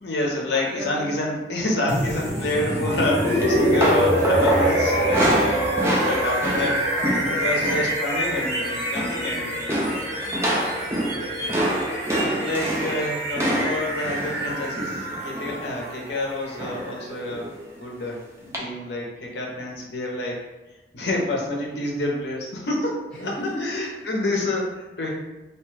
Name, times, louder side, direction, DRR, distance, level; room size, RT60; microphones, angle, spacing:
voice 1, 0.0-6.9 7.3-9.7 12.3-20.5 20.9-25.1, left 1 dB, 70° left, -1 dB, 0.6 m, -28 dB
voice 2, 0.5-1.3 2.3-3.0 3.5-3.8 6.9-8.2 9.2-9.6 10.2-11.8 23.1-24.1, equal, 5° left, -9 dB, 0.8 m, -38 dB
sound 1, 1.9-17.8, equal, 75° right, 1.1 m, -26 dB
sound 2, 3.4-7.9 8.2-8.5 8.8-9.3 9.7-15.7 16.6-16.9 17.3-17.5 18.5-18.6, equal, 15° right, 0.4 m, -27 dB
2.7 x 2.2 x 3.1 m, 1.1 s
head